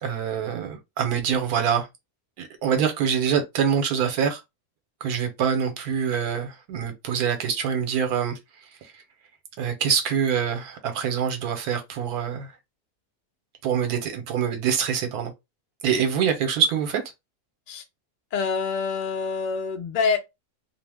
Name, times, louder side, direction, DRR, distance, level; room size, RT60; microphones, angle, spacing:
voice 1, 0.0-1.9 2.4-4.4 5.0-9.0 9.6-12.6 13.6-15.3 15.8-17.0, right 7 dB, 80° right, 1.1 m, -25 dB
voice 2, 18.3-20.2, left 5 dB, 85° left, 0.4 m, -26 dB
2.6 x 2.0 x 3.2 m
omnidirectional pair, 1.6 m